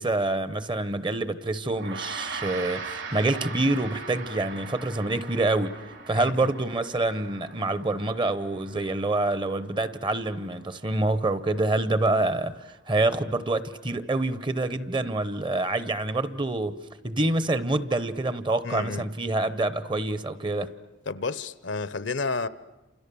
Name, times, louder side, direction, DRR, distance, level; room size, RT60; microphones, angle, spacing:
voice 1, 0.0-5.8 6.1-16.8 17.0-20.7, right 2 dB, 25° right, 0.8 m, -26 dB
Gong, 1.7-11.3, right 4 dB, 80° right, 4.4 m, -41 dB
voice 2, 6.1-6.5 18.6-19.0 21.1-22.5, left 4 dB, 65° left, 0.8 m, -31 dB
29.5 x 28.0 x 6.9 m
head